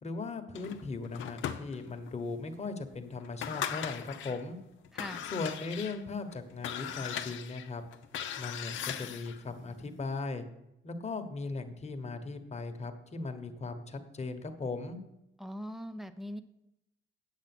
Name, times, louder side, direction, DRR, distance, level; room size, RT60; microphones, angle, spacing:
voice 1, 0.0-4.6 5.3-7.8 8.4-10.4 10.8-15.0, left 3 dB, 35° left, 6 dB, 1.3 m, -38 dB
sound 1, 0.5-2.1 2.6-2.7 3.2-4.4 4.8-9.4, left 9 dB, 75° left, 0.8 m, -39 dB
voice 2, 4.9-5.3 15.4-16.4, equal, ahead, 10 dB, 0.8 m, -41 dB
8.7 x 8.3 x 6.1 m, 0.87 s
cardioid pair, 90°, 20 cm